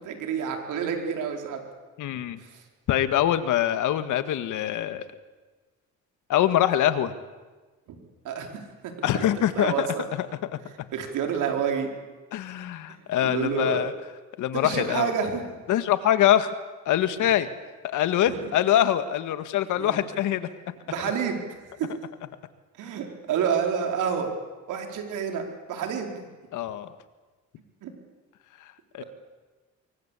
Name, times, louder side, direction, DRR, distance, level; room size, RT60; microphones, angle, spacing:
voice 1, 0.0-1.6 2.4-2.6 7.9-8.0 8.2-9.2 9.5-10.0 10.9-11.9 12.9-13.9 14.6-15.4 17.1-17.2 18.3-18.5 19.8-20.0 20.9-21.4 21.8-21.9 22.8-24.3 24.7-26.2 27.8-27.9 29.0-29.1, right 7 dB, 90° right, 4 dB, 4.7 m, -29 dB
voice 2, 2.0-2.4 2.9-5.0 6.3-7.1 9.0-10.3 12.3-13.9 14.4-15.1 15.7-16.6 16.9-17.5 17.8-20.5 26.5-26.9 28.6-29.0, left 11 dB, 85° left, 11 dB, 1.9 m, -24 dB
25.0 x 23.5 x 8.5 m, 1.3 s
cardioid pair, 90°, 30 cm